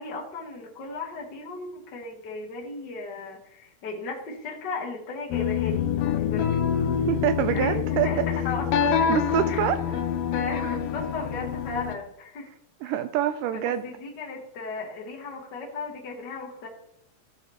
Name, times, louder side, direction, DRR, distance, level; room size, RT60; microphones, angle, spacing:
voice 1, 0.0-6.6 7.5-9.1 9.5-9.6 10.2-12.5 12.8-12.9 13.5-16.7, left 3 dB, 65° left, -1 dB, 1.0 m, -35 dB
sound 1, 5.3-11.9, left 8 dB, 80° left, 2.3 m, -26 dB
voice 2, 7.1-8.1 9.1-9.8 12.8-13.9, right 11 dB, 80° right, 10 dB, 2.0 m, -25 dB
14.0 x 5.7 x 3.0 m, 0.79 s
omnidirectional pair, 4.0 m